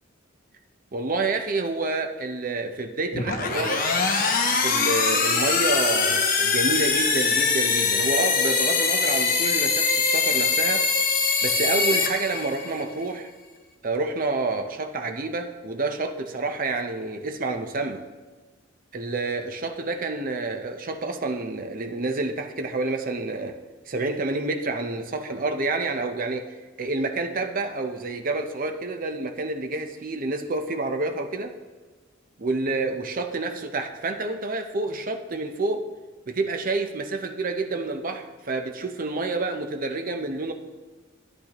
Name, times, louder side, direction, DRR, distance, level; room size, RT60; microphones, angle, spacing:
voice 1, 0.9-3.9 4.6-10.8 11.4-13.3 13.8-18.0 18.9-23.6 23.9-31.5 32.4-35.9 36.3-40.5, right 3 dB, 45° right, 5 dB, 0.7 m, -28 dB
sound 1, 3.1-12.8, left 4 dB, 45° left, 1.0 m, -23 dB
12.0 x 9.9 x 3.0 m, 1.3 s
head